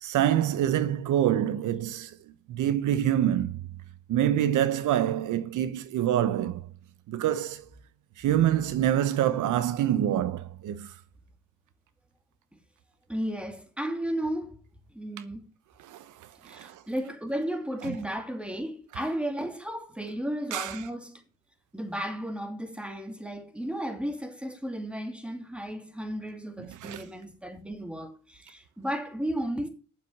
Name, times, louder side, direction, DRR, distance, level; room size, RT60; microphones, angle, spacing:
voice 1, 0.0-2.2 2.5-3.6 4.1-6.6 7.1-7.6 8.2-10.9 15.9-16.8 20.5-20.8 26.8-27.0, right 11 dB, 80° right, 1.0 m, -26 dB
voice 2, 13.1-14.6 14.9-15.5 16.4-21.2 21.7-29.7, equal, 5° right, 2.6 m, -34 dB
9.2 x 7.3 x 7.8 m
cardioid pair, 90°, 30 cm